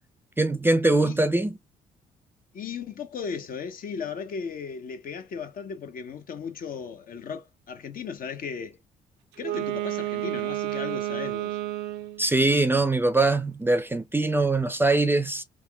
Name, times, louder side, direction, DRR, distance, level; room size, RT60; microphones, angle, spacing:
voice 1, 0.4-1.6 12.2-15.4, right 2 dB, 10° right, 0.5 m, -22 dB
voice 2, 2.5-8.8 9.4-11.6, left 6 dB, 55° left, 0.7 m, -36 dB
Wind instrument woodwind instrument, 9.3-12.3, right 15 dB, 75° right, 0.5 m, -30 dB
3.4 x 2.3 x 2.3 m
hypercardioid pair, 55°, 18 cm